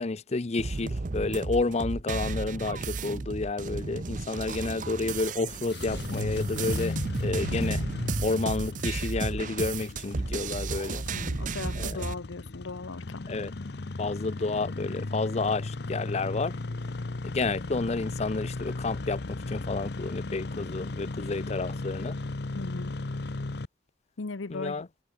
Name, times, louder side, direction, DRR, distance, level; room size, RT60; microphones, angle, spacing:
voice 1, 0.0-7.8 8.2-11.0 11.8-12.0 13.3-13.5 14.0-16.6 17.2-22.2 24.5-24.9, left 3 dB, 35° left, 0.5 m, -30 dB
sound 1, 0.6-12.1, right 3 dB, 45° right, 0.6 m, -33 dB
Engine starting, 5.5-23.7, left 2 dB, 60° left, 0.8 m, -36 dB
voice 2, 11.1-13.2 22.5-23.0 24.2-24.9, left 3 dB, 85° left, 0.9 m, -38 dB
head